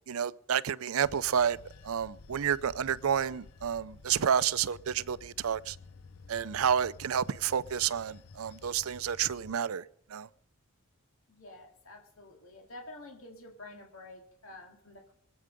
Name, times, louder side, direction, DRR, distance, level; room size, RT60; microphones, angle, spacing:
voice 1, 0.1-1.6 1.8-5.8 6.3-10.3, right 8 dB, 80° right, 0.5 m, -30 dB
Bell / Train, 1.0-9.6, left 4 dB, 90° left, 0.7 m, -52 dB
voice 2, 11.3-15.1, left 2 dB, 70° left, 2.3 m, -49 dB
22.5 x 8.7 x 5.2 m
head